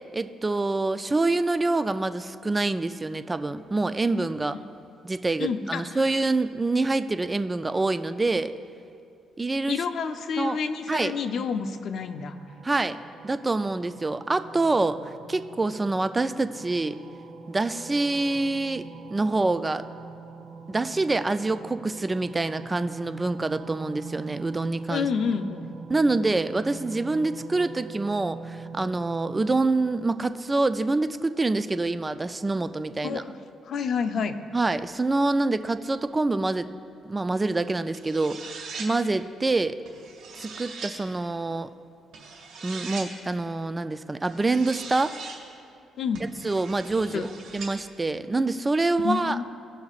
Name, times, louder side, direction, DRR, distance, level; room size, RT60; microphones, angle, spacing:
voice 1, 0.1-4.6 5.0-8.5 9.4-9.8 10.4-10.6 10.9-11.1 12.6-13.0 13.2-17.0 17.5-19.8 20.7-25.1 25.9-33.2 34.5-36.7 37.1-38.5 38.8-39.8 40.4-41.7 42.6-45.1 46.4-47.3 47.5-49.4, right 2 dB, 20° right, 11 dB, 0.4 m, -26 dB
voice 2, 5.4-5.8 9.7-12.3 24.9-25.7 33.0-33.3 33.7-34.4 46.0-46.2 47.1-47.3 49.0-49.4, left 6 dB, 60° left, 8 dB, 0.6 m, -28 dB
wind ambient synth, 12.0-29.6, right 4 dB, 45° right, 1.8 m, -43 dB
sound 1, 37.9-38.9 39.9-40.9 42.1-43.1 44.2-45.4 46.1-47.7, right 4 dB, 75° right, 1.9 m, -40 dB
17.0 x 5.8 x 2.4 m, 2.5 s
cardioid pair, 90°, 0 cm